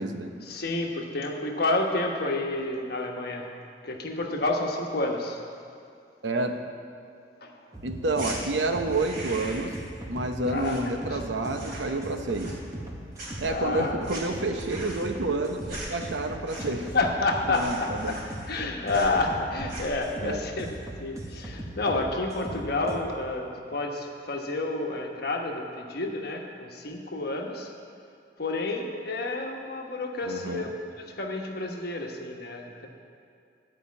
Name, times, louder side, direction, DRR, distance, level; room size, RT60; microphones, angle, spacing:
voice 1, 0.4-3.5 3.8-5.4 7.4-7.5 10.5-10.8 11.1-11.2 13.5-14.0 16.6-16.7 16.9-18.2 18.5-20.7 21.0-27.7 28.4-30.7 31.0-32.9, left 2 dB, 60° left, 1 dB, 1.2 m, -29 dB
voice 2, 6.2-6.6 7.8-9.7 10.1-12.6 13.4-16.9 17.5-17.8 18.0-18.2 20.2-20.4 30.3-30.6, right 2 dB, 85° right, 5 dB, 0.8 m, -29 dB
sound 1, 7.7-23.0, right 1 dB, 20° right, 1.0 m, -39 dB
sound 2, 8.2-8.4 8.8-9.8 10.0-11.2 11.5-12.0 12.3-12.9 13.2-16.9 17.2-17.3 17.5-18.6 18.9-19.2 19.6-20.0, right 2 dB, 55° right, 3.1 m, -41 dB
11.5 x 5.1 x 8.4 m, 2.5 s
head